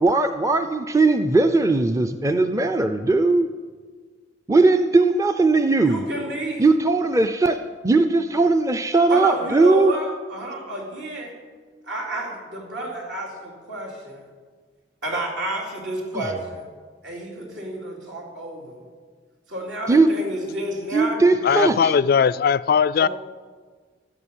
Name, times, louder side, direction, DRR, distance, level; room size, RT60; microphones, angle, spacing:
voice 1, 0.0-3.5 4.5-6.0 6.6-9.9 16.1-16.2 19.9-20.1 20.9-21.9, right 3 dB, 15° right, 0.5 m, -19 dB
voice 2, 5.8-6.7 9.1-11.3 11.9-14.3 15.0-16.6 17.0-18.8 19.5-21.6 23.0-23.1, right 1 dB, 70° right, 4.3 m, -30 dB
voice 3, 21.4-23.1, left 7 dB, 55° left, 0.3 m, -19 dB
13.0 x 11.0 x 9.0 m
head